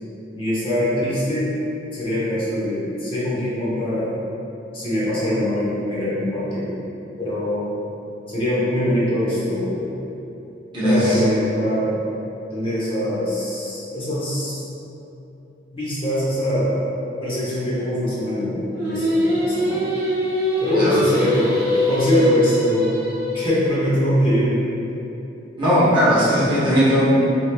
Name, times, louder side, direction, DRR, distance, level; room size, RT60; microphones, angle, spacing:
voice 1, 0.3-1.5 1.9-4.1 4.7-6.8 7.2-7.7 8.3-9.9 10.8-12.0 12.5-14.6 15.7-16.8 17.2-19.9 20.6-21.6 21.9-22.9 23.3-24.6, left 1 dB, 30° left, -9 dB, 0.8 m, -23 dB
voice 2, 10.7-11.2 20.7-21.0 25.6-27.1, equal, 25° right, -10 dB, 0.8 m, -18 dB
Singing, 18.7-23.9, equal, 60° right, 0.8 m, -23 dB
2.9 x 2.4 x 3.3 m, 2.9 s
head